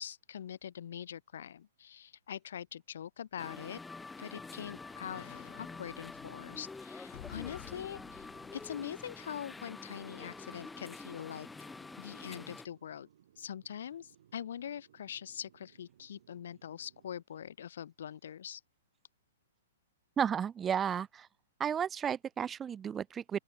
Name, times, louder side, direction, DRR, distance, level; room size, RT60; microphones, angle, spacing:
voice 1, 0.0-3.8 4.2-5.2 5.6-8.3 8.5-11.5 12.0-13.1 13.4-18.6, left 9 dB, 65° left, 0.6 m, -43 dB
sound 1, 3.4-12.7, left 3 dB, 5° left, 0.8 m, -47 dB
sound 2, 3.8-9.8 10.2-10.3, left 16 dB, 40° left, 1.2 m, -54 dB
sound 3, 7.3-17.2, right 10 dB, 55° right, 4.7 m, -65 dB
voice 2, 20.2-21.3 21.6-23.4, right 8 dB, 10° right, 0.4 m, -33 dB
open air
hypercardioid pair, 170°, 0 cm